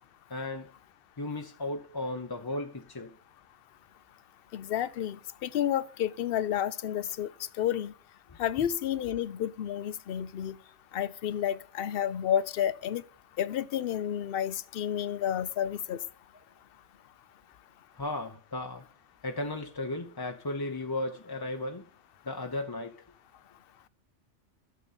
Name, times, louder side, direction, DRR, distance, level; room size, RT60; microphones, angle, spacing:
voice 1, 0.3-0.7 1.2-3.1 17.9-18.8 19.2-21.8 22.3-22.9, left 2 dB, 25° left, 0.6 m, -35 dB
voice 2, 4.5-5.2 5.4-7.3 7.6-7.9 8.4-10.6 10.9-13.0 13.4-16.0, left 10 dB, 60° left, 0.7 m, -30 dB
12.0 x 6.9 x 4.1 m
omnidirectional pair, 1.3 m